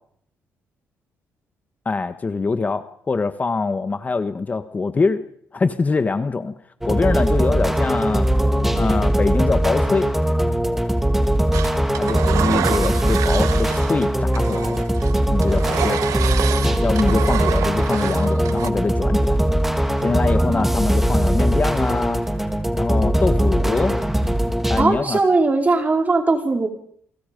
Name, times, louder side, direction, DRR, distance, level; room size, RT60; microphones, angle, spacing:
voice 1, 1.8-5.2 5.5-6.5 6.8-10.1 12.0-14.8 15.3-16.0 16.8-19.4 20.0-22.2 22.7-24.0 24.7-25.2, left 4 dB, 30° left, 11 dB, 1.4 m, -23 dB
sound 1, 6.8-24.8, right 1 dB, 5° right, 2.8 m, -20 dB
Engine, 11.5-14.0 14.3-18.7, right 11 dB, 80° right, 1.5 m, -28 dB
voice 2, 24.8-26.7, right 3 dB, 30° right, 4 dB, 4.7 m, -19 dB
28.5 x 25.0 x 5.3 m, 0.64 s
cardioid pair, 100°, 6 cm